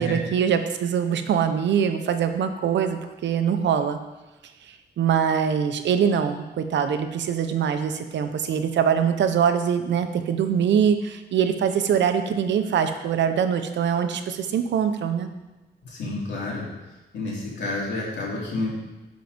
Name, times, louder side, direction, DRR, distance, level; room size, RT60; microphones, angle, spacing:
voice 1, 0.0-4.0 4.7-15.3, right 8 dB, 90° right, 8 dB, 0.7 m, -23 dB
voice 2, 15.8-16.7 17.1-18.7, left 2 dB, 80° left, -4 dB, 2.8 m, -29 dB
10.5 x 4.6 x 5.2 m, 1.1 s
wide cardioid pair, 165°, 18 cm